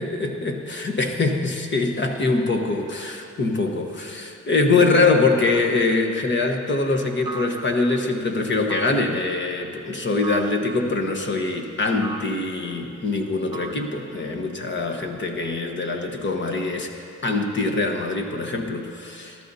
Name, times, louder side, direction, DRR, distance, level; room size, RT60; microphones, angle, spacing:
voice 1, 0.0-19.4, left 3 dB, 40° left, 3 dB, 1.3 m, -23 dB
sound 1, 5.5-6.0 7.2-8.0 8.7-9.3 10.2-10.8 12.0-12.5 13.5-14.3, right 3 dB, 15° right, 0.9 m, -37 dB
18.5 x 12.5 x 2.8 m, 2.4 s
cardioid pair, 90°, 30 cm